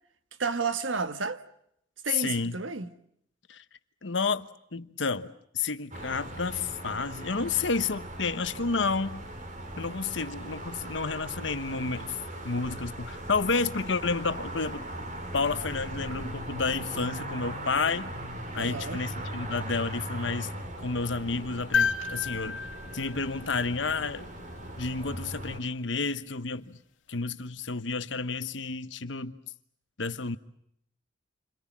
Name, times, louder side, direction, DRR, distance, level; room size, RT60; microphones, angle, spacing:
voice 1, 0.4-1.4 2.0-2.9 7.4-7.5 18.6-19.0, right 4 dB, 90° right, 1.4 m, -31 dB
voice 2, 2.1-2.6 3.5-3.6 4.0-9.2 9.8-12.1 12.4-14.9 15.3-18.1 18.5-20.5 20.8-22.6 22.9-24.3 24.8-26.8 27.1-29.3 30.0-30.4, left 4 dB, 70° left, 1.2 m, -30 dB
sound 1, 5.9-25.6, right 1 dB, 45° right, 3.3 m, -39 dB
sound 2, 21.7-24.1 26.1-26.2, left 6 dB, 85° left, 2.3 m, -31 dB
29.5 x 26.5 x 7.5 m
head